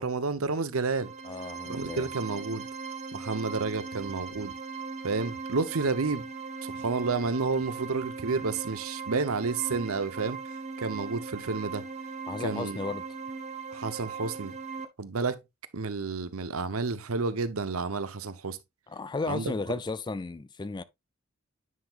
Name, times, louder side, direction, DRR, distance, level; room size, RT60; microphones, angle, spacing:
voice 1, 0.0-1.1 1.7-2.7 3.1-4.5 5.0-6.3 6.6-11.9 12.4-12.8 13.7-14.6 15.0-15.4 15.7-18.6 19.3-19.5, right 4 dB, 80° right, 0.8 m, -30 dB
sound 1, 0.8-14.8, right 5 dB, 30° right, 0.9 m, -39 dB
voice 2, 1.2-2.1 12.3-13.0 18.9-20.8, left 3 dB, 20° left, 0.4 m, -34 dB
9.5 x 5.9 x 2.4 m
head